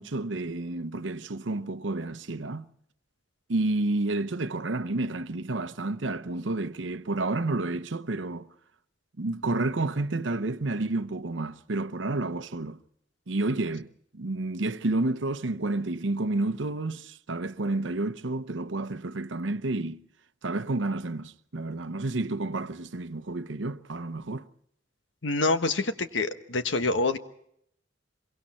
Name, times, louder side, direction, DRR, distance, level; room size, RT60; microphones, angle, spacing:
voice 1, 0.0-2.7 3.5-8.5 9.2-12.8 13.3-13.9 14.1-20.0 20.4-24.5, right 2 dB, 75° right, 0.9 m, -30 dB
voice 2, 25.2-27.2, left 3 dB, 75° left, 1.3 m, -26 dB
26.5 x 23.5 x 4.4 m
head